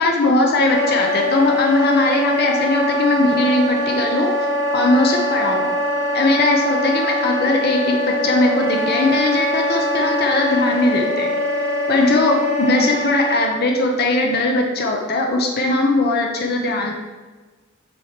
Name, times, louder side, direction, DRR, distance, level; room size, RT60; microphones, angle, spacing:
voice 1, 0.0-4.3 4.7-5.7 6.1-11.3 11.9-16.9, left 2 dB, 50° left, 1 dB, 0.9 m, -19 dB
Wind instrument woodwind instrument, 0.7-13.5, left 1 dB, 20° right, 1.0 m, -22 dB
7.4 x 3.1 x 5.1 m, 1.3 s
head